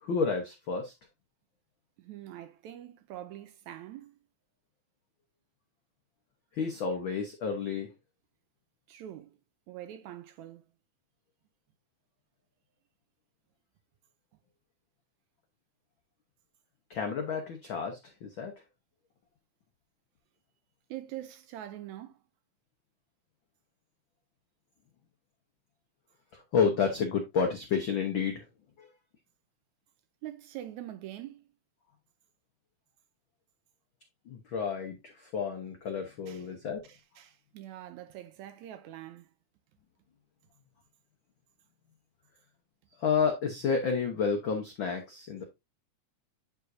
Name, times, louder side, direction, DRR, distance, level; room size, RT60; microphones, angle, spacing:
voice 1, 0.0-0.9 6.5-7.9 16.9-18.5 26.3-28.4 28.8-28.9 34.3-36.8 43.0-45.4, left 5 dB, 85° left, 1.1 m, -30 dB
voice 2, 2.0-4.2 8.9-9.4 9.7-10.6 20.9-22.2 30.2-31.4 36.3-36.5 36.9-39.3, right 13 dB, 75° right, 1.9 m, -44 dB
9.1 x 4.8 x 2.6 m
omnidirectional pair, 3.7 m